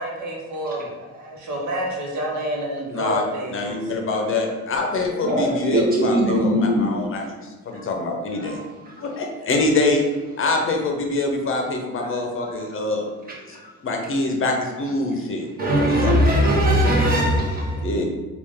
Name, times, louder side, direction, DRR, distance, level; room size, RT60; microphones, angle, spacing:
voice 1, 0.0-3.9, right 1 dB, 70° right, -2 dB, 1.0 m, -29 dB
voice 2, 2.9-3.2 3.5-7.2 7.7-8.6 9.0-10.0 10.4-13.1 13.5-13.6 13.8-15.5 15.8-16.3 17.8-18.0, left 2 dB, 45° left, 2 dB, 0.6 m, -24 dB
voice 3, 5.2-6.9 7.7-7.8 8.3-8.6 12.5-12.7 13.3-13.6 15.6-17.9, equal, 30° right, -4 dB, 1.1 m, -21 dB
3.4 x 2.4 x 3.6 m, 1.3 s
cardioid pair, 90°, 30 cm